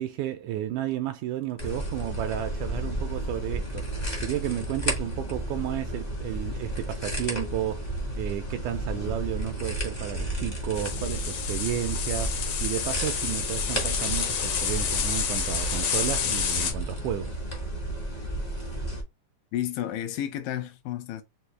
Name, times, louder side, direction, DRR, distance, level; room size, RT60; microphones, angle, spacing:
voice 1, 0.0-17.4, right 12 dB, 80° right, 1.8 m, -32 dB
sound 1, 1.6-19.0, right 1 dB, 35° left, 0.6 m, -32 dB
sound 2, 10.7-16.7, left 7 dB, 65° left, 1.7 m, -29 dB
voice 2, 19.5-21.2, left 11 dB, 85° left, 2.4 m, -31 dB
6.1 x 2.7 x 3.2 m
omnidirectional pair, 3.8 m